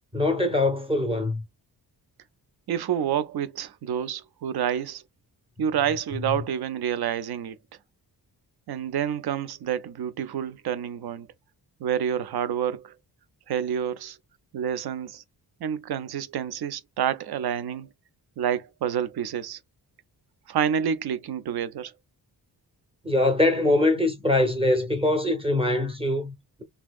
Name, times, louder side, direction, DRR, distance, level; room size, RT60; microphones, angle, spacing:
voice 1, 0.1-1.4 6.3-6.4 23.0-26.6, left 2 dB, 15° right, 0.6 m, -23 dB
voice 2, 2.7-5.0 5.6-7.6 8.7-11.3 11.8-12.9 13.5-14.2 14.5-15.2 15.6-17.9 18.4-19.6 20.5-21.9, right 9 dB, 70° right, 0.5 m, -28 dB
3.4 x 2.7 x 2.3 m
wide cardioid pair, 165°, 40 cm